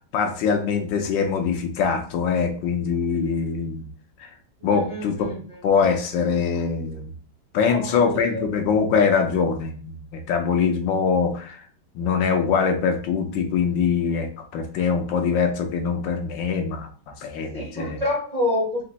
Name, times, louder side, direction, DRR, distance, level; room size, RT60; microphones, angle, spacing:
voice 1, 0.1-3.9 4.6-5.3 5.6-7.1 7.5-11.6 11.9-14.3 14.5-16.9 17.2-18.0, left 6 dB, 80° left, 5 dB, 1.4 m, -23 dB
voice 2, 4.6-5.6 7.7-8.4 17.5-18.8, left 1 dB, 30° right, -3 dB, 0.7 m, -28 dB
4.3 x 2.5 x 3.9 m, 0.41 s
omnidirectional pair, 2.1 m